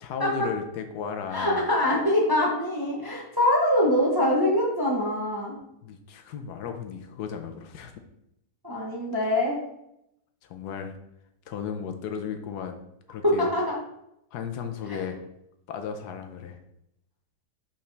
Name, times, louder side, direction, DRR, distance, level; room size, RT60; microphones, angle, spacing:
voice 1, 0.0-1.7 5.8-7.9 10.4-10.9 11.5-12.8 13.1-13.5 14.3-15.2 15.7-16.6, left 7 dB, 75° left, 6 dB, 1.2 m, -35 dB
voice 2, 1.3-5.6 8.6-9.6 13.2-13.8 14.9-15.0, left 1 dB, 20° right, -2 dB, 0.7 m, -24 dB
5.5 x 5.1 x 3.3 m, 0.81 s
omnidirectional pair, 1.7 m